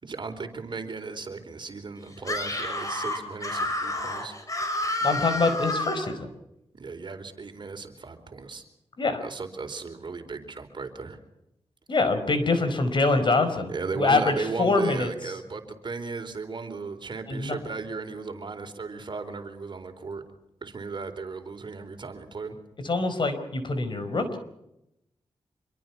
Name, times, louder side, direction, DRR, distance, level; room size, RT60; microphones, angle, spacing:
voice 1, 0.0-4.3 6.7-8.6 9.2-11.2 13.7-20.2 20.6-22.6, right 4 dB, 50° right, 6 dB, 4.2 m, -36 dB
Screaming, 2.2-6.2, left 1 dB, 35° left, 7.2 m, -30 dB
voice 2, 5.0-6.3 9.0-9.2 11.9-14.3 14.6-15.1 17.3-17.6 22.8-24.4, left 3 dB, 50° left, 10 dB, 4.9 m, -24 dB
26.5 x 22.5 x 6.0 m, 0.83 s
cardioid pair, 85°, 10 cm